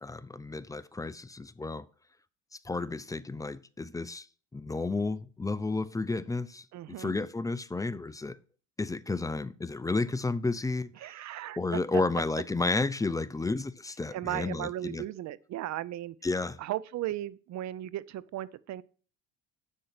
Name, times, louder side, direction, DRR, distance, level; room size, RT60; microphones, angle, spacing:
voice 1, 0.0-1.8 2.6-4.3 4.5-6.6 7.0-8.4 8.8-10.9 11.6-15.0 16.2-16.6, left 3 dB, 10° left, 0.4 m, -32 dB
voice 2, 6.7-7.2 11.0-12.0 14.1-16.2 16.6-18.8, right 13 dB, 50° right, 0.6 m, -36 dB
8.1 x 6.5 x 5.9 m
supercardioid pair, 105°, 36 cm